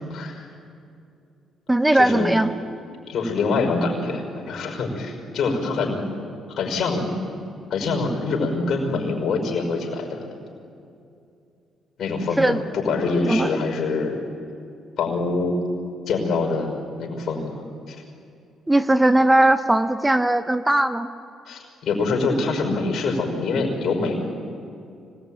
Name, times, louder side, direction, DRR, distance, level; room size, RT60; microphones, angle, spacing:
voice 1, 0.1-0.5 1.9-2.3 3.1-6.1 6.6-7.1 7.7-10.3 12.0-14.2 15.0-15.6 16.1-16.7 17.0-17.6 17.9-18.0 21.5-24.2, left 3 dB, 60° left, 2 dB, 5.6 m, -25 dB
voice 2, 1.7-2.5 12.4-12.6 13.3-13.5 18.7-21.1, right 1 dB, 10° right, 11 dB, 0.8 m, -18 dB
25.0 x 19.0 x 9.1 m, 2.5 s
cardioid pair, 90°, 0 cm